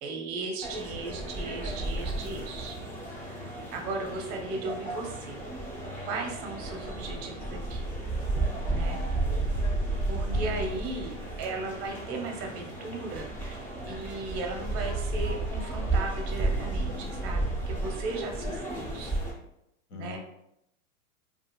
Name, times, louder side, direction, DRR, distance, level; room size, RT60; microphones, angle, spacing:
voice 1, 0.0-2.8 3.7-5.4 6.0-7.9 8.7-9.0 10.1-13.6 13.8-19.1 19.9-20.2, right 3 dB, 35° right, 3 dB, 0.6 m, -36 dB
sound 1, 0.6-19.3, right 2 dB, 5° left, 0.4 m, -32 dB
voice 2, 10.2-11.0 19.9-20.2, left 6 dB, 55° left, 5 dB, 0.6 m, -40 dB
2.4 x 2.4 x 2.8 m, 0.81 s
hypercardioid pair, 115°, 41 cm